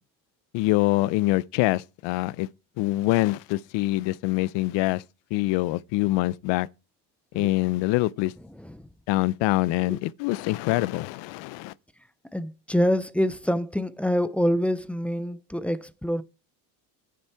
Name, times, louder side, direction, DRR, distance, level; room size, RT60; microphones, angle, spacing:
voice 1, 0.5-2.5 2.8-5.0 5.3-6.7 7.3-8.3 9.1-11.7, left 18 dB, 70° left, 0.6 m, -24 dB
voice 2, 8.6-8.9 9.9-10.0 12.3-16.2, equal, 5° left, 0.4 m, -26 dB
10.0 x 6.5 x 4.6 m
cardioid pair, 115°, 45 cm